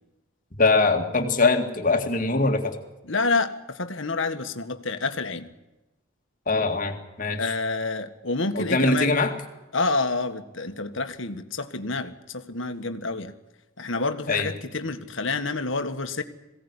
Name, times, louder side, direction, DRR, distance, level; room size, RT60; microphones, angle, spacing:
voice 1, 0.6-2.8 6.5-7.5 8.5-9.3 14.3-14.5, left 3 dB, 40° left, 4 dB, 2.1 m, -22 dB
voice 2, 3.1-5.5 7.4-9.1 9.7-13.3 13.8-16.2, left 3 dB, 60° left, 8 dB, 1.7 m, -28 dB
22.0 x 17.0 x 9.9 m, 1.0 s
head